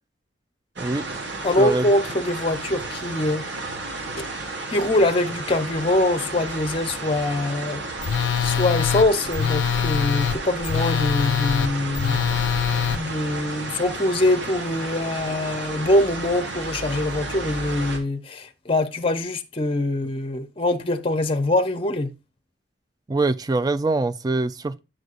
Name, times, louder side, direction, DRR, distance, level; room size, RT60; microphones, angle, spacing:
voice 1, 0.8-1.2 1.6-1.9 23.1-24.8, right 2 dB, 20° right, 0.3 m, -24 dB
sound 1, 0.8-18.0, right 2 dB, 60° right, 1.4 m, -33 dB
voice 2, 1.4-3.4 4.7-7.8 8.4-12.2 12.9-22.1, left 1 dB, 30° left, 0.6 m, -23 dB
Telephone, 8.0-13.0, left 8 dB, 70° left, 0.4 m, -23 dB
7.9 x 6.2 x 2.5 m
head